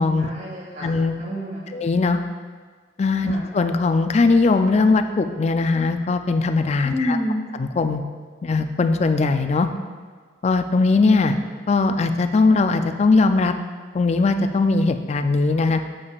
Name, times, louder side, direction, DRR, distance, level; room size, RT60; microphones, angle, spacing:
voice 1, 0.2-0.9 1.2-1.7 3.2-3.4 6.8-7.4, left 1 dB, 45° right, -5 dB, 2.0 m, -28 dB
voice 2, 0.8-1.1 1.7-2.2 3.0-7.2 7.6-8.0 8.4-9.7 10.4-11.4 11.7-13.5 13.9-15.8, left 3 dB, 40° left, 8 dB, 0.3 m, -19 dB
8.4 x 6.9 x 2.4 m, 1.5 s
head